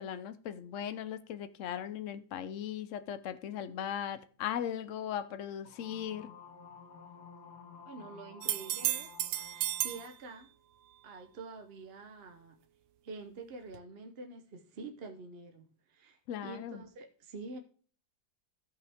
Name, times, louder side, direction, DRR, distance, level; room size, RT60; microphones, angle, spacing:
voice 1, 0.0-6.3 16.3-16.8, left 9 dB, 75° left, 0.7 m, -38 dB
sound 1, 5.6-10.2, left 6 dB, 60° left, 1.7 m, -53 dB
voice 2, 7.8-9.1 9.4-10.5 11.0-12.6 13.0-17.6, right 3 dB, 50° right, 0.7 m, -47 dB
sound 2, 8.4-10.1 13.7-13.8, right 13 dB, 80° right, 1.3 m, -33 dB
15.5 x 5.6 x 3.5 m
omnidirectional pair, 2.1 m